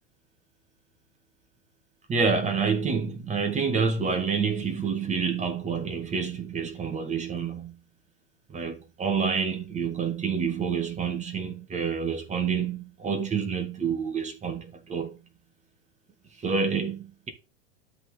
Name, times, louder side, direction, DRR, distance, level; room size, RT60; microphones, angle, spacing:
voice 1, 2.1-7.7 8.5-15.2 16.4-17.3, right 5 dB, 20° right, 2.0 m, -28 dB
12.5 x 4.2 x 3.6 m
figure-of-eight pair, 95°, 36 cm